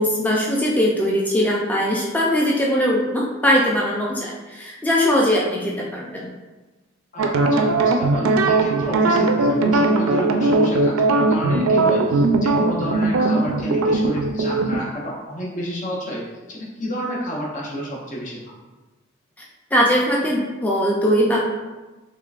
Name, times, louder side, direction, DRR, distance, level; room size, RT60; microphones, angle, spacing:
voice 1, 0.0-6.3 19.7-21.4, equal, 10° left, -3 dB, 0.4 m, -20 dB
voice 2, 7.1-16.2 16.5-18.6, equal, 35° left, -4 dB, 0.7 m, -29 dB
sound 1, 7.2-14.8, right 2 dB, 90° right, 0.4 m, -19 dB
3.7 x 3.2 x 2.4 m, 1.2 s
head